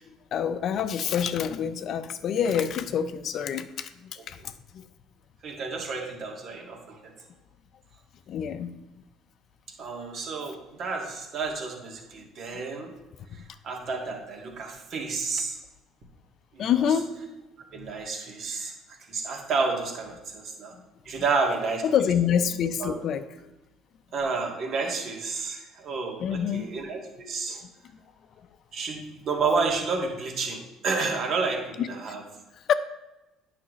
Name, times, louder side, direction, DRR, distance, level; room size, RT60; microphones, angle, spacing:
voice 1, 0.3-4.8 8.3-8.8 16.6-17.1 17.8-17.9 21.8-23.2 26.2-26.7 31.8-31.9 32.7-32.8, left 8 dB, 55° left, 12 dB, 0.6 m, -26 dB
voice 2, 5.4-7.0 9.8-12.9 13.6-15.6 16.5-16.8 17.7-18.7 19.1-20.7 21.1-21.8 22.8-23.0 24.1-27.6 28.7-32.2, right 4 dB, 55° right, 1 dB, 2.0 m, -30 dB
9.5 x 5.9 x 3.2 m, 1.0 s
hypercardioid pair, 65°, 0 cm